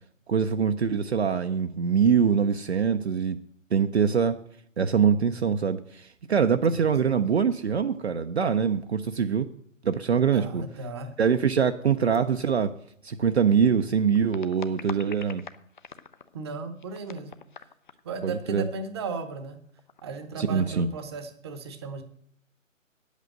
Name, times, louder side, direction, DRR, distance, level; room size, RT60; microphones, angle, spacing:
voice 1, 0.3-3.4 3.7-4.4 4.8-9.5 9.8-10.6 11.2-12.7 13.0-15.4 18.2-18.7 20.4-20.9, right 6 dB, 55° right, 7 dB, 0.7 m, -24 dB
voice 2, 6.7-7.3 10.1-11.1 16.3-17.3 18.0-19.6 20.0-22.0, right 4 dB, 20° right, 10 dB, 0.9 m, -36 dB
sound 1, 10.7-10.8 11.1-11.3 12.1-12.2 12.8-12.9 13.8-16.4 16.8-18.2 18.4-18.5 18.7-18.8 19.2-19.3 19.7-20.2, left 6 dB, 40° left, 0.6 m, -45 dB
9.3 x 8.2 x 7.8 m, 0.68 s
figure-of-eight pair, 140°, 39 cm